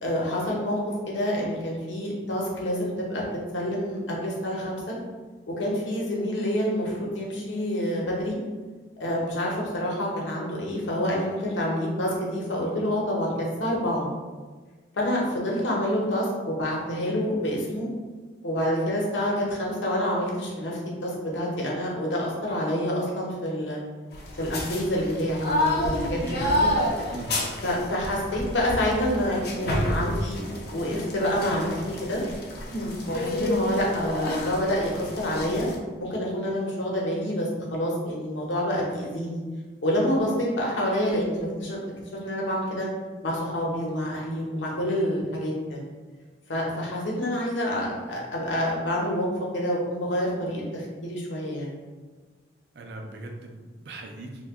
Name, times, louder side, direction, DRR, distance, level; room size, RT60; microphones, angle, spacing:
voice 1, 0.0-3.2 3.5-5.0 5.6-8.4 9.0-14.1 15.0-17.9 18.4-23.8 24.3-26.5 27.6-32.2 32.7-35.7 36.0-39.4 39.8-41.8 42.2-42.9 43.2-45.8 46.5-49.3 49.5-51.7, equal, 80° left, -3 dB, 0.8 m, -27 dB
sound 1, 24.1-35.8, left 1 dB, 55° left, 0.5 m, -29 dB
voice 2, 52.7-54.4, right 2 dB, 60° right, 3 dB, 0.4 m, -39 dB
2.8 x 2.2 x 3.4 m, 1.4 s
head